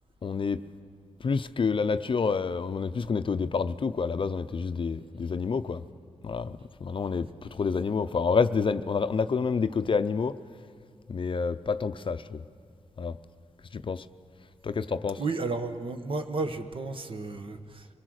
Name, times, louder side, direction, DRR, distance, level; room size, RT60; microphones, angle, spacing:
voice 1, 0.2-0.6 1.2-5.8 6.2-10.4 11.1-12.4 13.0-13.2 13.7-14.0 14.6-15.2, left 5 dB, 50° left, 11 dB, 0.6 m, -28 dB
voice 2, 15.2-17.9, right 3 dB, 50° right, 7 dB, 1.3 m, -33 dB
25.0 x 18.0 x 6.5 m, 2.2 s
cardioid pair, 85°, 11 cm